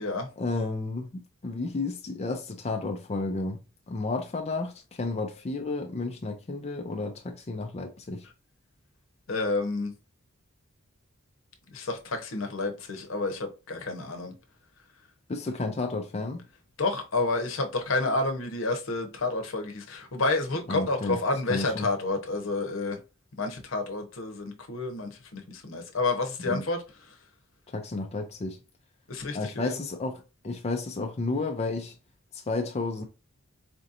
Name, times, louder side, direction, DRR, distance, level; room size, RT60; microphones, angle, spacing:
voice 1, 0.4-3.6 3.9-8.3 15.3-16.4 20.7-21.2 21.5-21.9 26.4-26.6 27.7-28.6 29.3-31.9 32.3-33.0, left 3 dB, 30° left, 0.4 m, -32 dB
voice 2, 9.3-9.9 11.7-14.3 16.8-23.0 23.4-27.2 29.1-29.8, left 3 dB, 75° left, 0.9 m, -30 dB
4.3 x 2.8 x 2.5 m
head